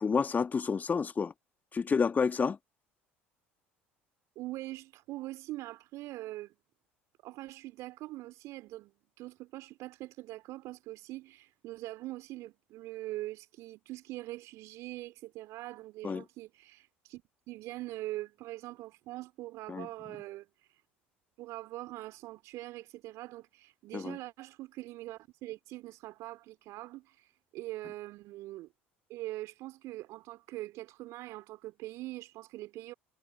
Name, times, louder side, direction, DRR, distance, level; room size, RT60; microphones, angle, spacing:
voice 1, 0.0-1.3 1.7-2.6 16.0-16.2 19.7-19.9 23.9-24.2, left 5 dB, 30° left, 1.8 m, -29 dB
voice 2, 4.4-6.5 7.2-8.9 9.2-20.8 21.4-28.7 29.1-32.9, right 17 dB, 55° right, 2.6 m, -43 dB
figure-of-eight pair, 65°, 6 cm